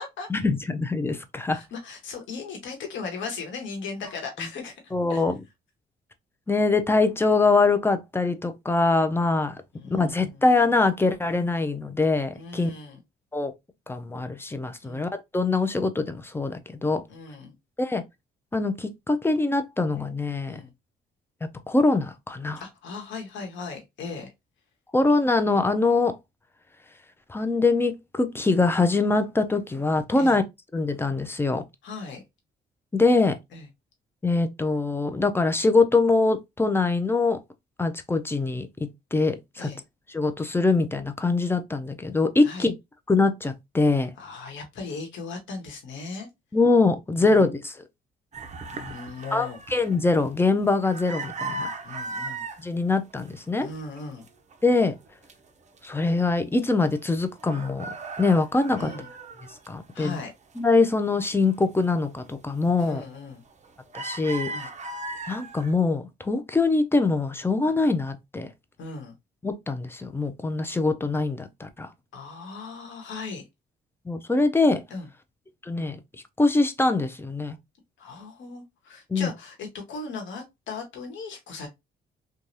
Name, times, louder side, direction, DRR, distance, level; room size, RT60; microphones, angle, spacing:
voice 1, 0.3-1.6 4.9-5.3 6.5-9.6 9.9-12.7 13.3-13.5 13.9-17.0 17.8-18.0 18.5-20.6 21.7-22.6 24.9-26.1 27.3-30.4 30.7-31.6 32.9-33.3 34.2-37.4 37.8-38.7 39.1-39.7 40.1-42.8 43.1-44.1 46.5-47.8 49.3-51.7 52.6-53.7 54.6-54.9 55.8-57.9 58.2-58.9 59.7-60.2 60.6-63.0 63.9-64.5 65.3-68.5 69.4-71.9 74.1-74.8 75.6-76.0 76.4-77.6 79.1-79.3, left 3 dB, 10° left, 0.5 m, -23 dB
voice 2, 1.5-5.2 9.7-10.4 12.3-13.0 14.8-15.0 17.1-17.5 20.5-20.7 22.6-24.3 30.2-30.4 31.8-32.2 33.5-33.7 39.6-39.8 42.4-42.7 44.2-46.3 47.2-47.4 48.7-49.6 51.4-52.4 53.6-54.3 58.8-59.1 59.9-60.3 62.8-63.4 64.5-64.7 68.8-69.1 72.1-73.4 74.9-75.1 78.0-81.7, left 4 dB, 75° left, 1.2 m, -37 dB
sound 1, 48.3-52.6 53.1-53.7 53.9-55.3 55.8-55.9 56.2-57.1 57.4-60.2 60.6-61.6 62.1-62.3 62.8-63.2 63.5-65.7, right 3 dB, 35° right, 0.6 m, -37 dB
3.1 x 2.3 x 2.6 m
cardioid pair, 90°, 20 cm